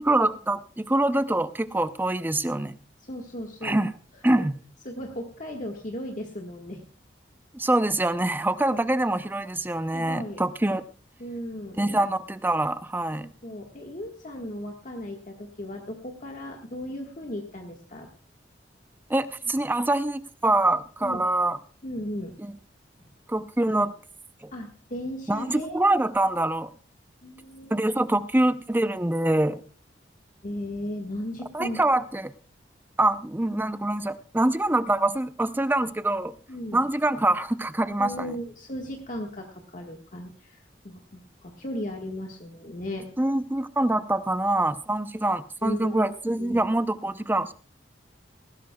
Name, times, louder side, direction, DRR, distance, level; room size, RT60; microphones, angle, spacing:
voice 1, 0.0-2.8 3.6-3.9 4.2-4.5 7.5-10.8 11.8-13.3 19.1-21.6 23.3-23.9 24.4-24.5 25.3-26.7 27.7-29.6 31.5-32.3 33.0-36.3 36.7-38.3 43.2-47.5, right 1 dB, 10° right, 12 dB, 0.5 m, -25 dB
voice 2, 3.0-3.8 4.2-4.4 4.8-6.8 8.7-8.9 9.9-10.4 10.7-10.8 11.2-12.0 13.2-18.1 21.0-21.2 21.8-22.3 24.5-25.8 27.2-27.8 30.4-31.8 36.5-36.8 38.0-43.1 45.6-46.0 46.4-46.7, left 1 dB, 45° left, 1 dB, 1.5 m, -36 dB
19.0 x 16.0 x 2.3 m, 0.39 s
head